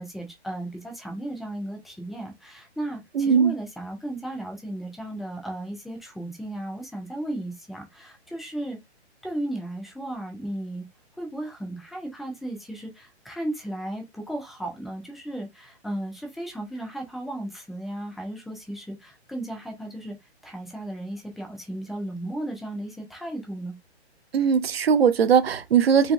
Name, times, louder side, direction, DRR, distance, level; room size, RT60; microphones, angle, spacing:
voice 1, 0.0-8.8 9.2-10.9 11.2-20.2 20.4-23.8, right 1 dB, ahead, 0.3 m, -35 dB
voice 2, 3.1-3.5 24.3-26.1, right 7 dB, 60° right, 0.9 m, -19 dB
4.4 x 3.0 x 2.5 m
hypercardioid pair, 175°, 34 cm